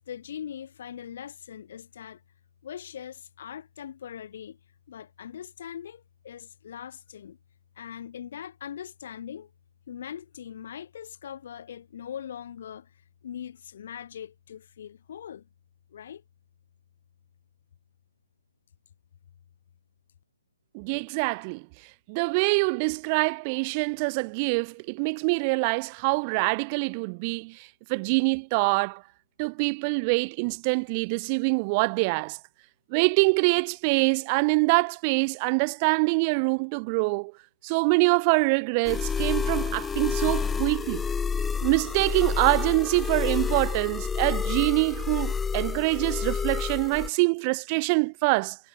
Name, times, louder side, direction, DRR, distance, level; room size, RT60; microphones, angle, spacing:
voice 1, 0.0-2.2 2.6-4.6 4.9-7.4 7.8-9.5 9.9-12.9 13.2-15.4 15.9-16.2, left 9 dB, 45° left, 3.2 m, -41 dB
voice 2, 20.7-21.6 22.1-29.0 29.4-32.4 32.9-37.3 37.6-41.0 41.6-48.6, right 31 dB, 25° right, 1.0 m, -25 dB
sound 1, 38.9-47.1, left 5 dB, 10° left, 0.3 m, -29 dB
figure-of-eight pair, 135°, 0 cm